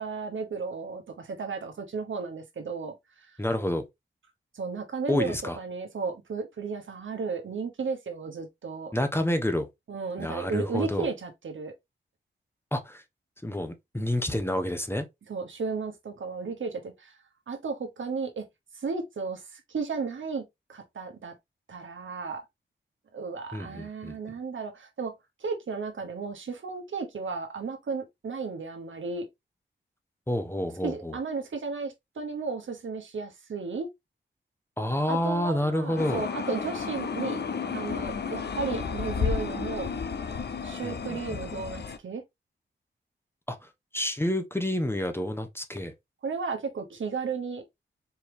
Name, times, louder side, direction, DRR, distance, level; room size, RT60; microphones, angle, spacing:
voice 1, 0.0-3.3 4.5-8.9 9.9-11.7 15.3-17.1 17.5-18.5 18.8-20.4 20.7-21.3 21.7-22.4 23.1-25.1 25.4-29.3 30.8-33.9 35.1-39.9 40.6-42.2 46.2-47.6, right 4 dB, 80° right, 1.2 m, -34 dB
voice 2, 3.4-3.8 5.1-5.6 8.9-9.7 10.2-11.1 12.7-13.0 13.4-15.1 23.5-24.1 30.3-31.2 34.8-36.2 40.8-41.4 43.5-43.6 43.9-45.9, left 1 dB, 10° left, 1.0 m, -29 dB
sound 1, 36.0-42.0, left 6 dB, 60° left, 0.6 m, -32 dB
4.6 x 2.9 x 3.4 m
cardioid pair, 55°, 20 cm